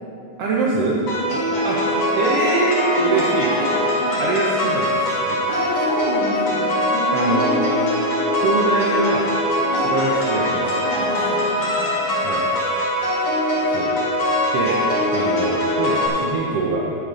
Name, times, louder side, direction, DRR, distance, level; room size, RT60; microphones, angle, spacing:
voice 1, 0.4-1.0 1.6-1.8 2.1-3.5 4.2-5.4 7.1-7.5 8.3-9.3 9.8-10.8 12.2-12.5 13.7-13.9 14.5-14.8 15.1-16.8, right 3 dB, 65° right, -4 dB, 1.7 m, -23 dB
sound 1, 1.1-16.1, left 1 dB, 85° left, 4.3 m, -22 dB
voice 2, 1.2-2.2 3.0-4.3 5.5-7.8 9.6-9.9 10.8-12.3, equal, 50° left, -7 dB, 3.1 m, -30 dB
11.0 x 8.6 x 5.2 m, 2.9 s
omnidirectional pair, 3.5 m